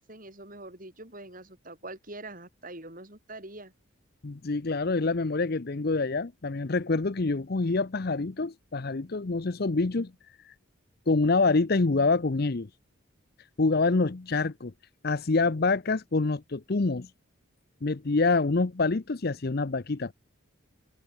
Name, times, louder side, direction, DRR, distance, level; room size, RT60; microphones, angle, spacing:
voice 1, 0.0-3.7, right 2 dB, 40° right, 6.1 m, -44 dB
voice 2, 4.2-10.1 11.1-12.7 13.6-14.7 15.0-17.1 17.8-20.1, left 3 dB, 50° left, 0.7 m, -26 dB
head